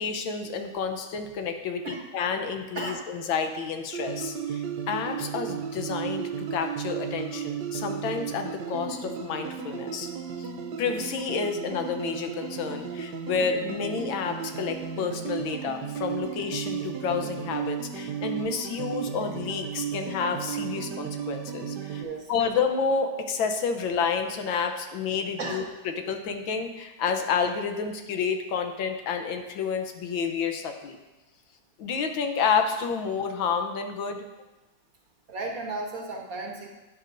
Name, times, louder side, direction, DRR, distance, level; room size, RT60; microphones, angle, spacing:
voice 1, 0.0-10.1 10.4-10.5 10.8-22.0 22.3-31.0 31.8-34.3, left 5 dB, 85° left, 6 dB, 1.6 m, -30 dB
voice 2, 2.7-3.1 22.0-22.3 25.4-25.6 35.3-36.7, right 3 dB, 50° right, 1 dB, 1.4 m, -34 dB
sound 1, 3.9-22.0, right 7 dB, 70° right, 1.2 m, -34 dB
11.5 x 9.6 x 2.6 m, 1.1 s
omnidirectional pair, 2.1 m